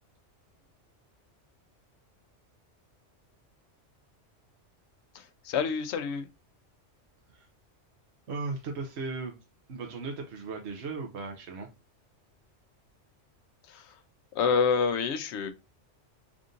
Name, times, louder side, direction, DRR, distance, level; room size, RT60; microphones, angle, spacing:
voice 1, 5.1-6.3 13.6-14.0 14.3-15.5, left 6 dB, 70° left, 0.9 m, -28 dB
voice 2, 8.3-9.3 9.7-11.7, right 4 dB, 65° right, 1.0 m, -36 dB
3.6 x 2.6 x 3.7 m
omnidirectional pair, 1.2 m